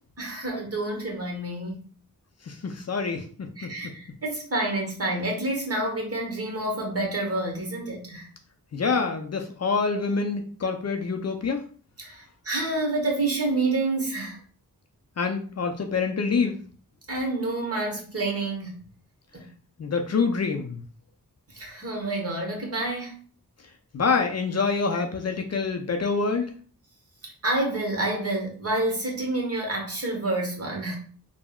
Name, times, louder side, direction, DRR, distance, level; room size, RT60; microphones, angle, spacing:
voice 1, 0.2-1.8 3.6-8.3 12.0-14.4 17.1-18.8 19.3-19.5 21.5-23.2 27.2-31.0, right 2 dB, 40° right, 0 dB, 1.1 m, -28 dB
voice 2, 2.5-3.7 8.7-11.6 15.2-16.6 19.8-20.8 23.9-26.5, left 4 dB, 45° left, 5 dB, 0.5 m, -26 dB
3.5 x 2.1 x 2.3 m, 0.42 s
cardioid pair, 50°, 35 cm